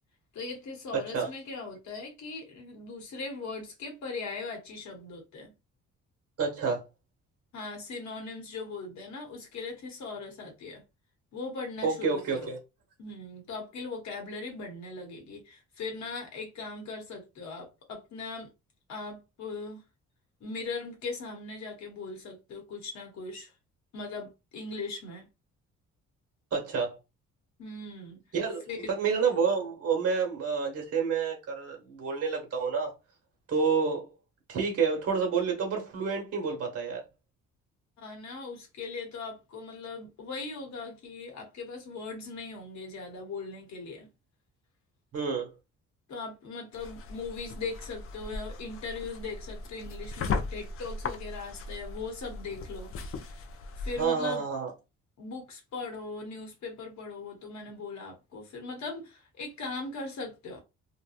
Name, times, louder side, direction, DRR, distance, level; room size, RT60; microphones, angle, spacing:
voice 1, 0.3-5.5 7.5-10.8 11.3-12.5 13.0-18.5 18.9-19.8 20.4-23.5 23.9-25.3 27.6-28.2 28.7-28.9 38.0-44.1 46.1-52.9 53.3-53.4 53.8-54.5 55.2-60.6, left 3 dB, 65° left, 1.0 m, -39 dB
voice 2, 0.9-1.3 6.4-6.8 11.8-12.6 26.5-27.0 28.3-32.9 33.5-34.1 34.5-37.0 45.1-45.5 54.0-54.7, right 5 dB, 50° right, 1.0 m, -29 dB
sound 1, 46.7-54.1, left 4 dB, 45° left, 0.5 m, -38 dB
2.8 x 2.1 x 2.4 m
cardioid pair, 90°, 30 cm